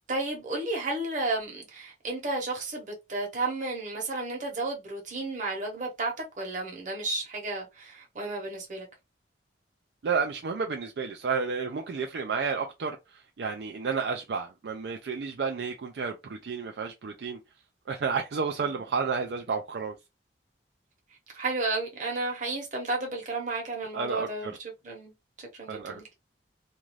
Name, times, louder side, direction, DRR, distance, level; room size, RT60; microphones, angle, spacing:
voice 1, 0.1-8.9 21.3-24.6 24.8-25.1 25.4-26.0, right 2 dB, 45° right, 1.0 m, -32 dB
voice 2, 10.0-17.4 17.9-19.9 23.9-24.6 25.7-26.0, right 5 dB, 65° right, 0.4 m, -31 dB
2.6 x 2.3 x 3.1 m
head